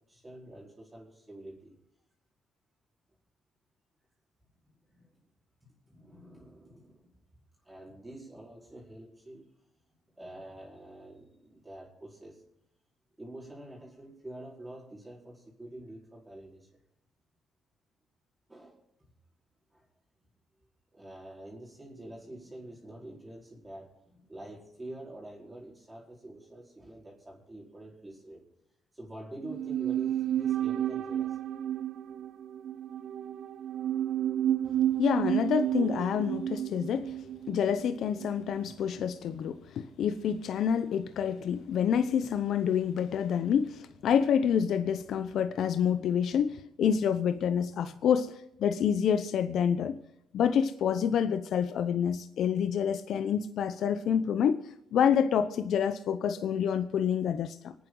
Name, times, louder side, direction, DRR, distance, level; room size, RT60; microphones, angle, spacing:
voice 1, 0.1-1.7 4.9-5.3 5.6-7.2 7.6-9.5 10.1-12.4 13.2-16.7 18.5-18.8 19.7-19.8 20.9-28.4 28.9-31.4, right 1 dB, 15° right, -4 dB, 4.7 m, -47 dB
sound 1, 29.4-38.7 39.0-39.1, right 11 dB, 75° right, 0.9 m, -32 dB
voice 2, 35.0-37.1 37.5-50.0 50.3-54.6 54.9-57.7, left 8 dB, 70° left, 10 dB, 0.8 m, -28 dB
25.5 x 9.5 x 3.9 m, 0.81 s
cardioid pair, 90°, 0 cm